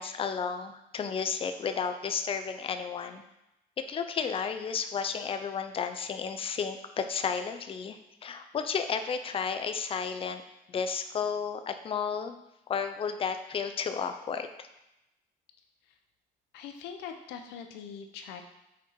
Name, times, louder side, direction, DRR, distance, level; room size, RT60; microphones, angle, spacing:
voice 1, 0.0-3.2 3.8-10.4 10.7-12.3 12.7-14.7, left 6 dB, 35° left, 8 dB, 0.5 m, -32 dB
voice 2, 16.5-18.4, left 7 dB, 90° left, 6 dB, 0.8 m, -42 dB
6.0 x 4.3 x 4.6 m, 0.90 s
cardioid pair, 110°, 17 cm